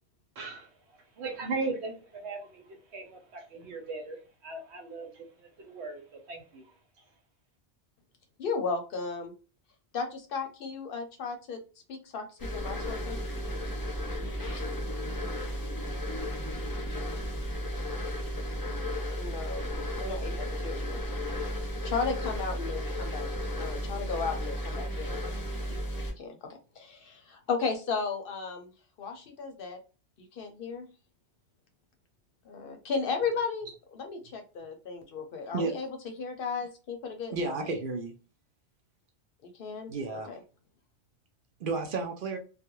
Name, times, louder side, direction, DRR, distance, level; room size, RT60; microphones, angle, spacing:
voice 1, 0.4-6.7, right 3 dB, 80° right, 4 dB, 1.0 m, -38 dB
voice 2, 8.4-9.3 9.9-11.6 11.9-13.2 19.2-19.7 19.9-21.0 21.8-23.3 23.6-25.2 26.0-26.4 26.8-28.7 29.0-29.8 30.2-30.9 32.5-35.9 36.2-37.5 39.4-39.9 40.3-40.4, left 5 dB, 65° left, 5 dB, 0.7 m, -35 dB
sound 1, 12.4-26.1, equal, 25° left, 0.5 m, -34 dB
voice 3, 37.3-38.1 39.9-40.3 41.6-42.4, right 3 dB, 60° right, 4 dB, 0.6 m, -32 dB
2.3 x 2.1 x 2.9 m, 0.34 s
omnidirectional pair, 1.1 m